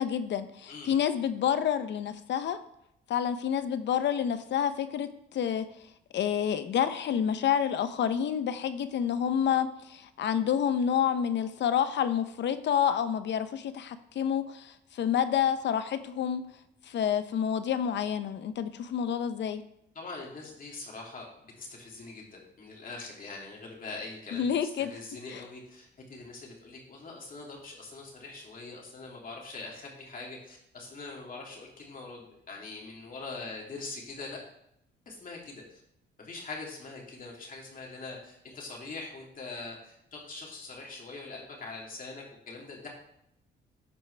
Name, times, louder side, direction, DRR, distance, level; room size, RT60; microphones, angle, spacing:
voice 1, 0.0-2.6 3.1-5.6 6.1-16.4 16.9-19.6 24.3-25.0 25.3-25.4, left 8 dB, 65° left, 11 dB, 0.7 m, -28 dB
voice 2, 19.9-21.3 21.6-34.4 35.1-35.8 36.2-42.9, left 3 dB, 45° left, -1 dB, 2.8 m, -43 dB
13.5 x 4.7 x 3.3 m, 0.77 s
cardioid pair, 90°, 20 cm